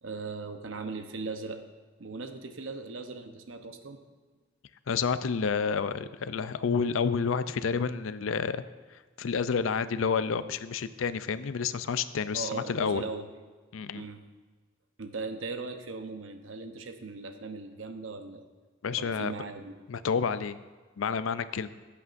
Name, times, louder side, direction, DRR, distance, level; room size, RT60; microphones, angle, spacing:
voice 1, 0.0-1.6 2.0-4.0 12.3-13.3 13.9-14.2 15.0-18.5 19.0-19.7, right 3 dB, 75° right, 7 dB, 0.9 m, -38 dB
voice 2, 4.9-8.6 8.9-13.0 13.7-14.0 18.8-19.3 19.9-20.6 21.0-21.7, left 6 dB, 80° left, 13 dB, 0.5 m, -29 dB
16.5 x 8.4 x 2.6 m, 1.4 s
head